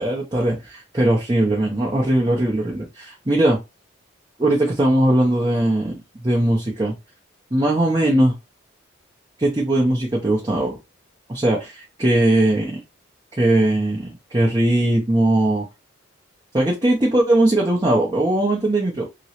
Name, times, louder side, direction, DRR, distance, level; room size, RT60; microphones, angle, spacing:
voice 1, 0.0-3.6 4.4-6.0 6.2-6.9 7.5-8.3 9.4-10.8 11.3-12.8 13.4-15.7 16.5-19.0, right 1 dB, 20° right, -3 dB, 0.6 m, -19 dB
3.0 x 2.9 x 2.8 m, 0.23 s
head